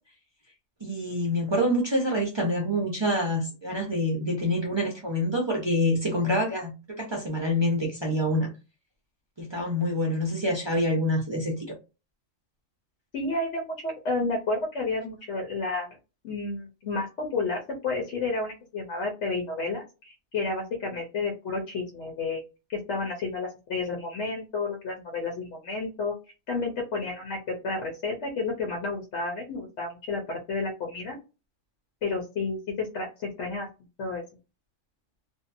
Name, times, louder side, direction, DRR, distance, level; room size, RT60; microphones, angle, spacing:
voice 1, 0.8-8.5 9.4-11.7, left 1 dB, 30° right, -1 dB, 0.5 m, -26 dB
voice 2, 13.1-15.9 16.2-22.4 22.7-26.1 26.5-27.4 27.6-31.2 32.0-33.7 34.0-34.2, left 3 dB, 65° left, 0 dB, 1.0 m, -31 dB
2.6 x 2.2 x 2.5 m, 0.29 s
omnidirectional pair, 1.3 m